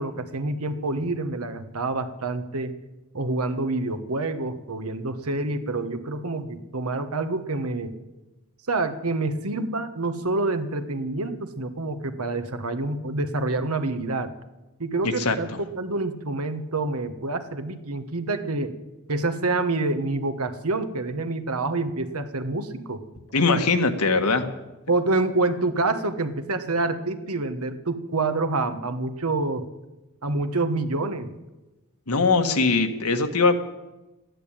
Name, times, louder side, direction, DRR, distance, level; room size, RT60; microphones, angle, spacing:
voice 1, 0.0-2.7 3.1-8.0 8.7-14.3 14.8-15.5 15.7-18.7 19.1-23.0 24.9-29.7 30.2-31.3, right 2 dB, 75° right, 9 dB, 1.4 m, -27 dB
voice 2, 15.0-15.4 23.3-24.5 32.1-33.6, left 3 dB, 85° left, 7 dB, 1.5 m, -21 dB
13.5 x 10.5 x 8.9 m, 1.0 s
head